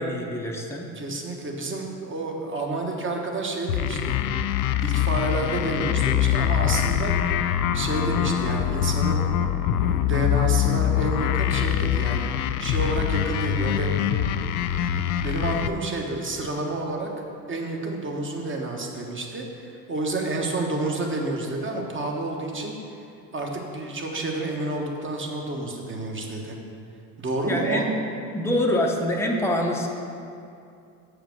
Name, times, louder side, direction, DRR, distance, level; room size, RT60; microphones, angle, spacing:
voice 1, 0.0-0.9 27.5-28.0 28.3-29.9, left 1 dB, 5° left, 0 dB, 0.9 m, -25 dB
voice 2, 0.9-4.2 4.8-7.1 7.7-9.2 9.7-12.3 12.6-13.9 14.8-17.1 17.5-22.8 23.3-26.6 27.2-27.9, right 2 dB, 25° right, 1 dB, 1.3 m, -29 dB
sound 1, 3.7-15.7, left 10 dB, 70° left, 0.5 m, -24 dB
7.0 x 5.1 x 6.0 m, 2.5 s
hypercardioid pair, 70°, 48 cm